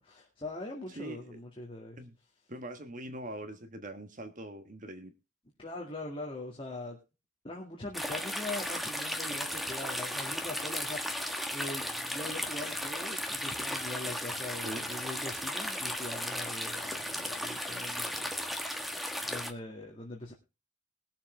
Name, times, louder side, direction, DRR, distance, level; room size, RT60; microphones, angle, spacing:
voice 1, 0.0-2.0 5.6-7.0 7.4-18.3 19.2-20.3, left 2 dB, 25° left, 2.0 m, -42 dB
voice 2, 0.9-1.4 2.0-2.2 2.5-5.1 14.6-14.9, right 1 dB, 40° right, 1.4 m, -42 dB
sound 1, 7.9-19.5, equal, ahead, 1.3 m, -35 dB
20.5 x 7.3 x 3.4 m
head